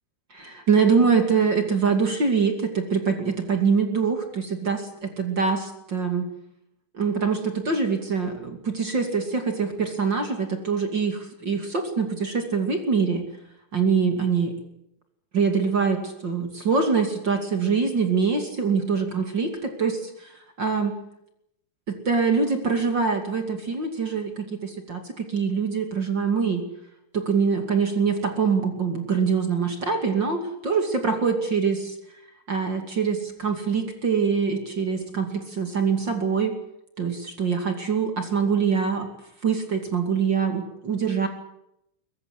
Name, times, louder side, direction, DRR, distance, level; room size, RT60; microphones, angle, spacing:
voice 1, 0.3-6.3 6.9-13.3 13.7-14.5 15.3-20.3 20.6-20.9 21.9-26.6 27.1-31.9 32.5-36.5 37.0-39.1 39.4-41.3, right 5 dB, 35° right, 5 dB, 2.1 m, -24 dB
22.5 x 20.5 x 8.2 m, 0.79 s
omnidirectional pair, 5.7 m